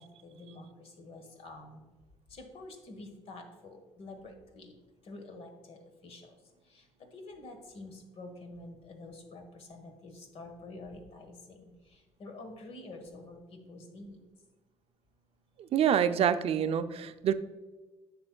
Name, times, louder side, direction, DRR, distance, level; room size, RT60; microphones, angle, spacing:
voice 1, 0.0-1.8 2.3-4.7 5.1-6.2 6.7-6.8 7.1-11.7 12.2-13.4 13.7-14.2, left 2 dB, 55° left, 5 dB, 1.4 m, -48 dB
voice 2, 15.6-17.3, right 9 dB, 55° right, 11 dB, 0.5 m, -27 dB
9.6 x 6.0 x 2.3 m, 1.2 s
supercardioid pair, 85°, 12 cm